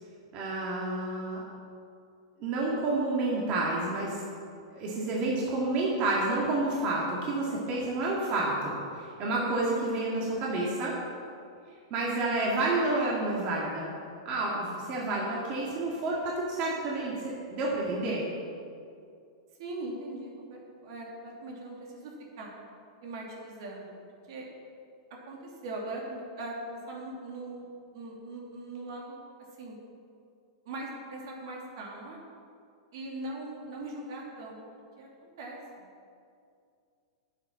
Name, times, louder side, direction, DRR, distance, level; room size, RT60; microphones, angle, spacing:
voice 1, 0.3-1.4 2.4-4.3 4.7-10.9 11.9-13.9 14.2-18.2, right 2 dB, 40° right, -5 dB, 2.3 m, -29 dB
voice 2, 19.6-22.5 23.0-23.9 24.3-24.5 25.3-27.7 27.9-29.2 29.5-29.8 30.6-32.2 32.9-34.6 35.0-35.9, right 2 dB, 60° right, -2 dB, 2.8 m, -40 dB
9.9 x 7.9 x 5.7 m, 2.4 s
hypercardioid pair, 115°, 3 cm